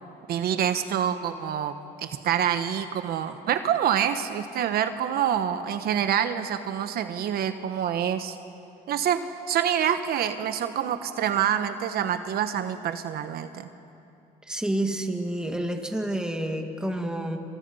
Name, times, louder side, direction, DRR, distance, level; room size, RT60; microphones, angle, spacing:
voice 1, 0.3-8.4 8.9-13.7, right 9 dB, 65° right, 9 dB, 1.2 m, -26 dB
voice 2, 14.5-17.4, right 1 dB, 5° right, 3 dB, 2.4 m, -29 dB
28.0 x 27.5 x 5.6 m, 2.8 s
cardioid pair, 110°, 17 cm